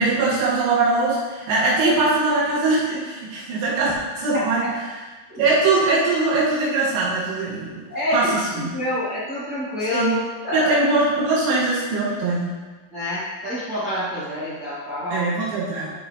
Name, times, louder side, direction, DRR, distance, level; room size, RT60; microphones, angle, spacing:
voice 1, 0.0-4.7 5.4-7.8 8.1-8.5 9.9-10.1 10.5-12.5 15.1-15.9, right 3 dB, 80° right, -8 dB, 5.2 m, -21 dB
voice 2, 4.3-4.7 5.3-5.5 7.9-10.7 12.9-15.3, left 1 dB, 50° right, -10 dB, 1.1 m, -27 dB
14.5 x 5.0 x 3.2 m, 1.3 s
omnidirectional pair, 5.9 m